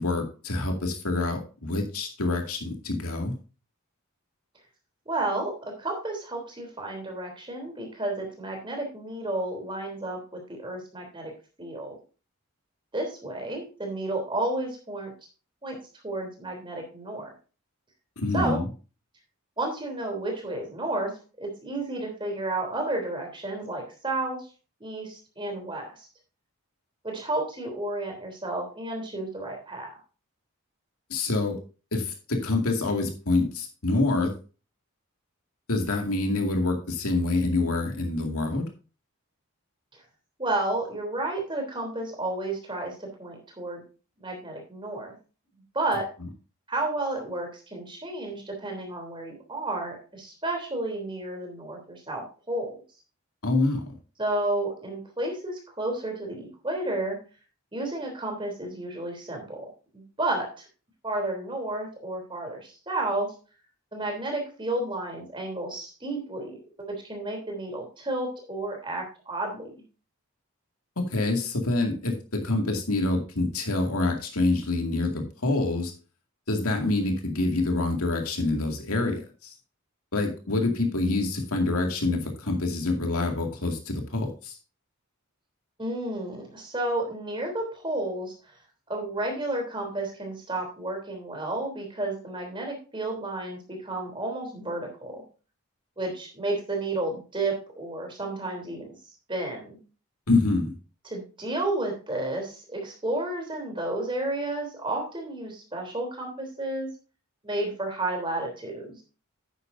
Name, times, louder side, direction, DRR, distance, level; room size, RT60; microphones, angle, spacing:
voice 1, 0.0-3.3 18.2-18.6 31.1-31.6 31.9-34.3 35.7-38.6 53.4-53.9 71.0-75.9 76.5-79.5 80.1-84.5 100.3-100.7, left 2 dB, 80° left, 3 dB, 2.2 m, -26 dB
voice 2, 5.0-11.3 11.6-11.9 12.9-15.1 15.6-15.7 16.0-17.3 18.3-18.6 19.6-21.1 21.4-24.5 24.8-26.1 27.0-29.9 40.4-43.8 44.2-45.1 45.7-46.1 46.7-52.8 54.2-57.2 57.7-59.7 59.9-60.6 61.0-63.3 63.9-69.8 85.8-88.3 88.9-95.2 96.0-98.9 99.3-99.8 101.0-106.9 107.4-109.0, right 2 dB, 20° right, 2 dB, 3.3 m, -31 dB
11.0 x 9.0 x 2.6 m, 0.34 s
head